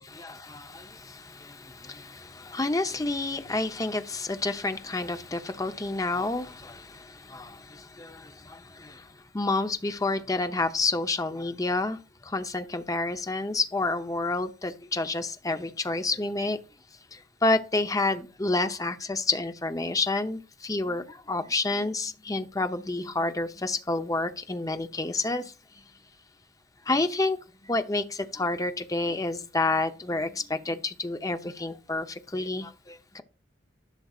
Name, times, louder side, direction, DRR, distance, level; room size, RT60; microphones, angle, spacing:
voice 1, 0.0-9.1 9.3-16.6 17.1-25.5 26.9-27.4 27.6-33.2, left 2 dB, 20° left, 0.7 m, -29 dB
11.5 x 6.1 x 2.4 m
head